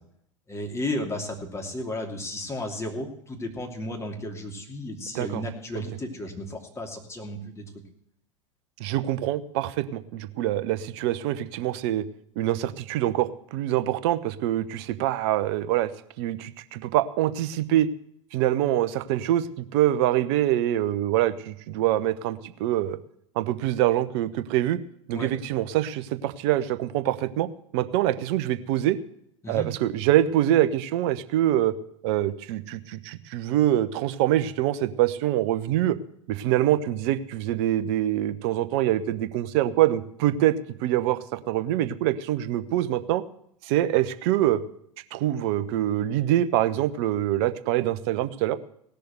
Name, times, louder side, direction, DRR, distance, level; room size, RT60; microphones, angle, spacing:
voice 1, 0.5-7.6 25.1-25.3 29.4-29.7, left 1 dB, 15° left, 2 dB, 2.8 m, -33 dB
voice 2, 8.8-12.1 12.4-15.9 16.2-17.9 18.3-23.0 23.3-24.8 25.1-27.5 27.7-29.0 29.5-31.8 32.0-36.0 36.3-43.2 43.6-44.6 45.1-48.6, right 13 dB, 50° right, 13 dB, 0.9 m, -25 dB
17.0 x 6.8 x 7.9 m, 0.73 s
figure-of-eight pair, 85°, 17 cm